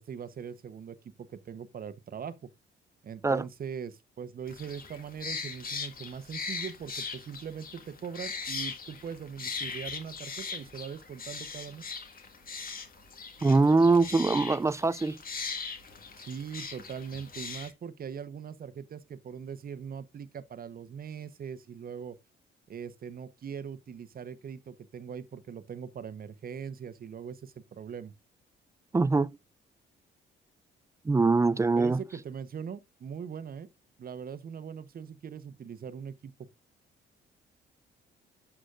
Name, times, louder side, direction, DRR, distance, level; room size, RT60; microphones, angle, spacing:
voice 1, 0.0-2.5 3.0-11.8 16.2-22.2 22.7-28.1 31.8-33.7 34.0-36.5, right 7 dB, 50° right, 1.0 m, -41 dB
sound 1, 4.5-17.7, left 5 dB, 45° left, 1.8 m, -40 dB
voice 2, 13.4-15.2 28.9-29.4 31.0-32.0, right 3 dB, 15° right, 0.4 m, -23 dB
11.5 x 6.1 x 2.5 m
cardioid pair, 90°, 20 cm